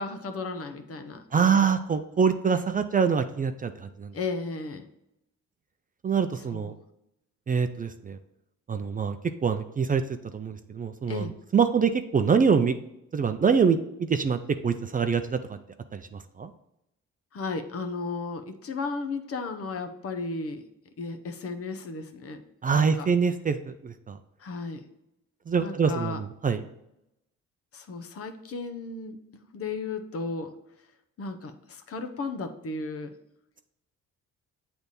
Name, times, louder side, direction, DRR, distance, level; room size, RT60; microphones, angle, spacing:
voice 1, 0.0-1.7 4.1-4.8 6.5-6.7 11.1-11.3 17.3-20.6 21.0-22.4 22.7-23.1 24.4-24.8 25.6-26.2 27.7-30.5 31.2-33.1, left 3 dB, 50° left, 7 dB, 0.8 m, -34 dB
voice 2, 1.3-4.1 6.0-6.7 7.5-8.2 8.7-9.2 9.4-10.0 10.3-12.8 13.1-15.6 15.9-16.5 22.6-24.2 25.5-26.6, right 6 dB, 30° right, 9 dB, 0.4 m, -25 dB
7.9 x 3.4 x 4.1 m, 0.85 s
cardioid pair, 90°, 30 cm